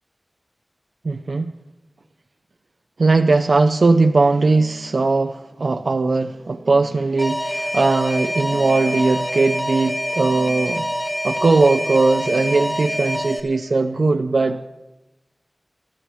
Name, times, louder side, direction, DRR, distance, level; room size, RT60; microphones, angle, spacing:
voice 1, 1.0-1.5 3.0-10.9 11.2-14.7, right 3 dB, 75° right, 7 dB, 0.5 m, -19 dB
Alarm, 7.2-13.4, equal, 10° left, 1.8 m, -25 dB
24.5 x 12.5 x 3.1 m, 1.0 s
wide cardioid pair, 80°, 0 cm